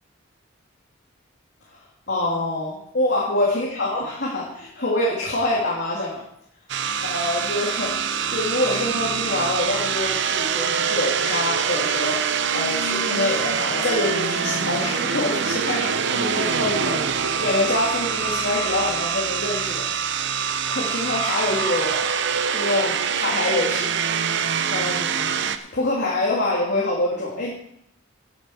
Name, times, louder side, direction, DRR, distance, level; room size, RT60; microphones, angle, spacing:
voice 1, 2.1-6.2 7.0-12.2 12.5-22.1 22.5-23.9 24.7-25.4 25.7-27.5, left 2 dB, 55° left, -5 dB, 3.1 m, -26 dB
sound 1, 6.7-25.6, right 7 dB, 60° right, 0.8 m, -24 dB
11.0 x 8.0 x 7.5 m, 0.72 s
head